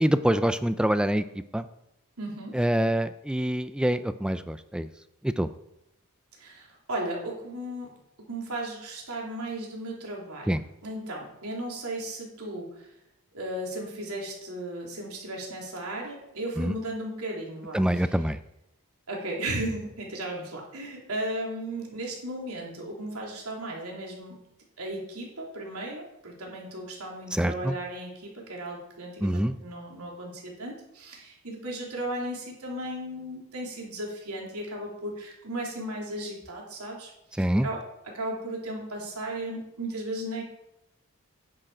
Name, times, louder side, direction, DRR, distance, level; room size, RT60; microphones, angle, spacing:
voice 1, 0.0-1.2 1.5-1.6 2.5-4.9 5.2-5.5 10.5-10.6 16.6-16.7 17.7-18.4 27.3-27.7 29.2-29.5 37.4-37.7, right 1 dB, 5° right, 12 dB, 0.3 m, -25 dB
voice 2, 2.2-2.5 6.4-8.0 8.3-12.9 13.3-18.3 19.1-24.4 24.8-40.4, right 1 dB, 85° right, -1 dB, 3.5 m, -36 dB
10.0 x 9.0 x 5.0 m, 0.86 s
head